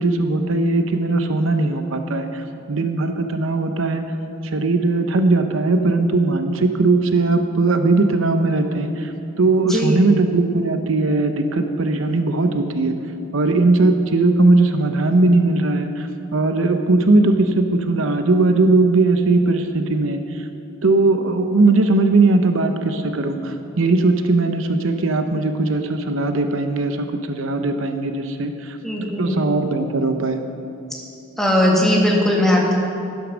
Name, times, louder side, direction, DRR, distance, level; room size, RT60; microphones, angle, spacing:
voice 1, 0.0-4.0 4.4-9.1 9.4-13.0 13.3-20.5 20.8-28.8 29.2-30.4, right 2 dB, 70° right, 7 dB, 0.8 m, -19 dB
voice 2, 9.6-10.0 28.8-29.4 31.4-32.7, left 1 dB, ahead, -2 dB, 1.7 m, -18 dB
11.5 x 11.0 x 6.1 m, 2.7 s
head